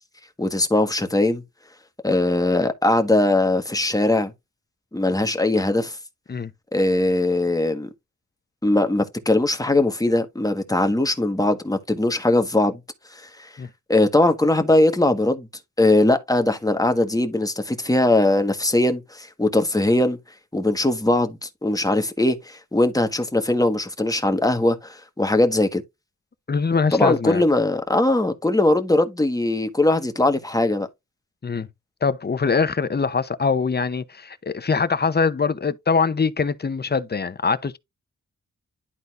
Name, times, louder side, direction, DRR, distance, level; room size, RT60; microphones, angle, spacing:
voice 1, 0.4-1.4 2.0-4.3 4.9-6.0 6.7-7.9 8.6-12.8 13.1-13.5 13.9-15.5 15.8-20.2 20.5-25.8 26.9-30.9, left 2 dB, 10° left, 1.4 m, -20 dB
voice 2, 26.5-27.4 31.4-31.7 32.0-37.8, left 5 dB, 35° left, 0.8 m, -23 dB
11.5 x 4.0 x 2.5 m
cardioid pair, 75°, 30 cm